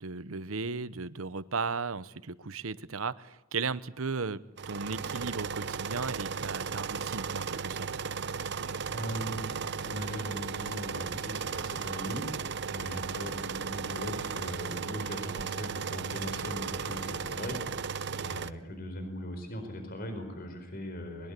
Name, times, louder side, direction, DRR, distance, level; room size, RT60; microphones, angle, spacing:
voice 1, 0.0-4.4 4.7-7.9, right 4 dB, 85° right, 15 dB, 1.0 m, -35 dB
sound 1, 4.6-18.5, right 6 dB, 55° right, 0.9 m, -35 dB
voice 2, 8.9-12.3 12.7-21.3, equal, 45° left, 7 dB, 4.6 m, -40 dB
23.0 x 21.5 x 8.3 m, 0.88 s
head